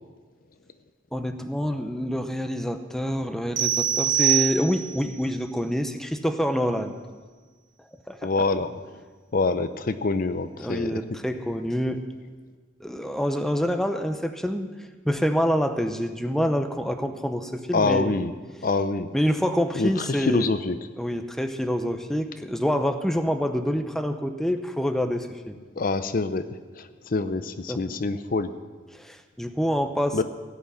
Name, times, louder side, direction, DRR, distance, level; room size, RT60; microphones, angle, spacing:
voice 1, 1.1-6.9 8.1-8.3 10.6-12.0 12.8-14.7 15.0-18.1 19.1-20.5 21.0-25.6 27.7-27.8 28.9-30.2, equal, ahead, 7 dB, 0.7 m, -26 dB
sound 1, 3.6-5.1, right 11 dB, 75° right, 1.2 m, -24 dB
voice 2, 8.2-8.8 9.3-11.0 17.7-18.3 18.6-19.1 19.8-20.8 25.8-26.5 26.7-28.5 30.1-30.2, left 3 dB, 45° left, 11 dB, 0.5 m, -25 dB
17.0 x 6.1 x 9.7 m, 1.4 s
head